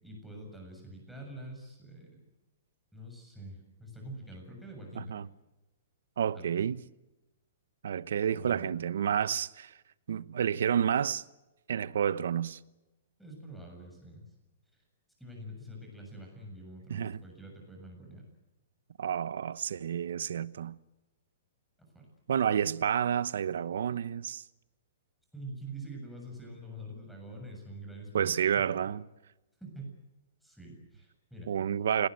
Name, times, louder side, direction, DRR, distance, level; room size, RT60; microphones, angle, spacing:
voice 1, 0.0-2.2 2.9-5.2 6.3-6.5 8.3-8.7 13.2-14.2 15.2-18.2 21.9-22.1 25.3-28.7 29.6-29.9 30.4-31.5, right 1 dB, ahead, 7.4 m, -45 dB
voice 2, 4.9-5.3 6.2-6.8 7.8-9.7 10.1-11.2 11.7-12.6 16.9-17.2 19.0-20.8 22.3-24.4 28.1-29.0 31.5-32.1, right 8 dB, 75° right, 1.0 m, -30 dB
28.5 x 19.5 x 7.9 m
hypercardioid pair, 165°, 0 cm